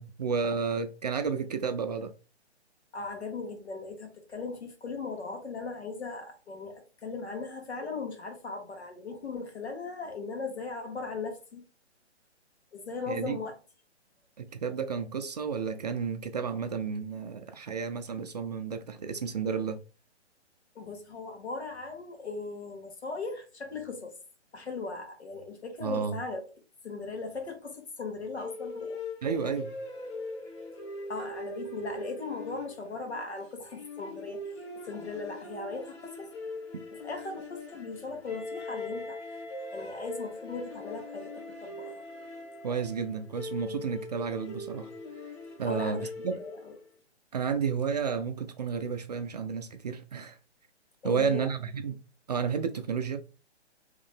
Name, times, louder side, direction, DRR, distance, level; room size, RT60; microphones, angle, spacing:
voice 1, 0.0-2.1 13.1-13.4 14.4-19.8 25.8-26.2 29.2-29.8 36.7-36.8 42.6-44.9 45.6-46.3 47.3-50.4 51.0-52.0 52.3-53.2, right 6 dB, 40° right, 0.4 m, -31 dB
voice 2, 2.9-11.6 12.7-13.6 20.8-24.1 24.5-26.4 26.8-29.0 31.1-34.5 34.8-36.3 37.0-39.2 39.7-42.0 45.7-46.8 51.0-51.4, left 4 dB, 70° left, 1.6 m, -38 dB
sound 1, 28.4-46.9, left 2 dB, 25° left, 0.8 m, -41 dB
Wind instrument woodwind instrument, 38.3-43.3, left 1 dB, 5° right, 1.5 m, -47 dB
3.8 x 3.2 x 3.3 m
figure-of-eight pair, 135°, 34 cm